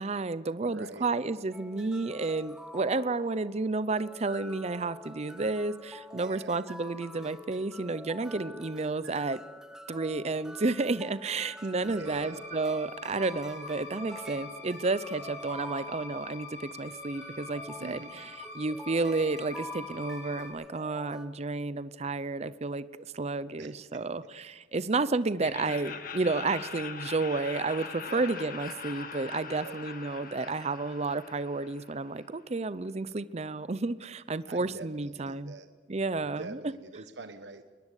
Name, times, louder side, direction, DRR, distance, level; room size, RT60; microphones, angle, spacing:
voice 1, 0.0-9.4 9.9-18.0 18.5-22.9 23.1-35.5 35.9-36.6, right 3 dB, 35° right, 16 dB, 0.6 m, -31 dB
voice 2, 0.6-1.1 6.2-6.6 11.9-12.4 17.8-18.2 23.6-24.0 28.1-28.2 29.5-29.8 34.5-35.7 36.4-37.6, right 3 dB, 80° right, 8 dB, 1.1 m, -44 dB
sound 1, 1.5-21.3, left 1 dB, 5° right, 1.2 m, -47 dB
sound 2, 12.0-20.5, left 3 dB, 70° left, 5.4 m, -45 dB
Laughter, 25.4-32.3, left 5 dB, 55° left, 2.1 m, -42 dB
21.5 x 20.5 x 8.2 m, 1.5 s
head